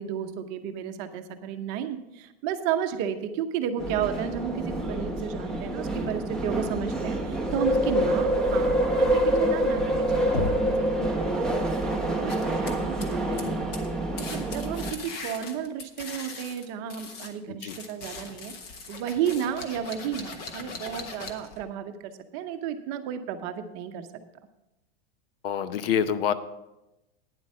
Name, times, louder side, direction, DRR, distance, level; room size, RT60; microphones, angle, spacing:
voice 1, 0.0-11.4 12.1-13.8 14.2-18.5 18.9-24.1, right 9 dB, 35° right, 8 dB, 0.8 m, -33 dB
sound 1, 3.8-14.9, right 1 dB, ahead, 0.8 m, -26 dB
Knock, 10.3-11.0, left 3 dB, 85° left, 1.5 m, -31 dB
sound 2, 12.3-13.5 13.7-13.9 14.2-17.3 17.7-21.6, left 4 dB, 30° left, 1.2 m, -40 dB
voice 2, 13.2-13.7 17.5-17.8 25.4-26.3, left 8 dB, 65° left, 13 dB, 0.8 m, -28 dB
9.9 x 7.8 x 5.5 m, 0.95 s
supercardioid pair, 160°, 31 cm